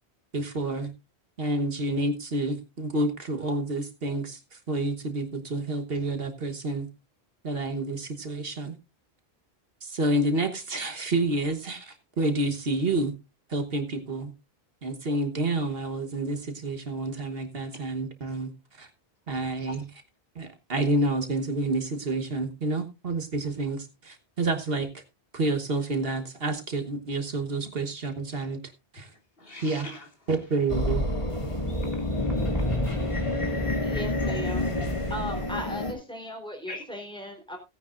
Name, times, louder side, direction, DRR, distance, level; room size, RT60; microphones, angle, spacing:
voice 1, 0.3-0.9 1.4-6.9 7.4-8.7 9.8-13.1 13.5-14.3 14.8-18.5 18.8-18.9 19.3-19.8 20.3-25.0 25.3-28.6 28.9-29.1 29.6-29.9 30.3-31.0, right 2 dB, 60° right, 1.5 m, -29 dB
voice 2, 29.0-30.1 31.6-34.0 36.7-36.9, left 2 dB, 60° left, 2.5 m, -45 dB
sound 1, 30.7-35.9, left 1 dB, 30° left, 2.0 m, -28 dB
voice 3, 33.8-34.7 35.1-37.6, equal, 5° left, 3.5 m, -37 dB
17.0 x 9.6 x 2.5 m
omnidirectional pair, 1.1 m